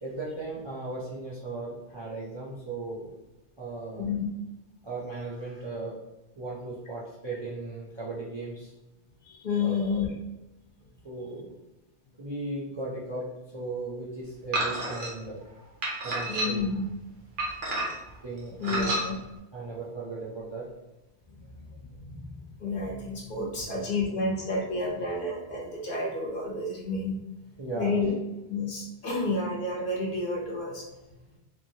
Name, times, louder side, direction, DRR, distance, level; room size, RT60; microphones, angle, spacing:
voice 1, 0.0-3.1 3.6-4.1 4.8-6.0 6.4-8.7 9.6-10.1 11.0-11.6 12.2-15.4 16.0-16.6 18.2-18.9 19.5-20.7 21.5-21.6 24.6-24.7 27.6-28.0, right 3 dB, 35° right, -7 dB, 0.4 m, -37 dB
voice 2, 4.0-4.3 9.2-10.1 16.3-16.9 18.6-19.2 21.7-27.2 27.7-28.1 28.5-30.9, left 3 dB, 55° left, -2 dB, 0.8 m, -30 dB
sound 1, 14.5-15.1 15.8-16.8 17.4-18.1 18.6-19.0, right 1 dB, 50° right, 0.9 m, -29 dB
2.8 x 2.8 x 2.7 m, 1.0 s
omnidirectional pair, 1.2 m